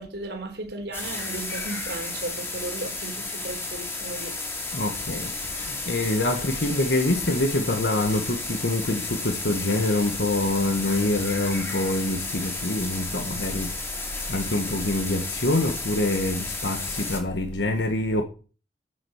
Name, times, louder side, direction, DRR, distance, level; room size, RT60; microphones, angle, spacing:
voice 1, 0.0-4.3, right 2 dB, 80° right, 3.8 m, -35 dB
sound 1, 0.9-17.2, left 3 dB, 15° left, 2.2 m, -33 dB
voice 2, 4.7-18.2, left 2 dB, 90° left, 1.4 m, -26 dB
11.0 x 7.6 x 7.2 m
head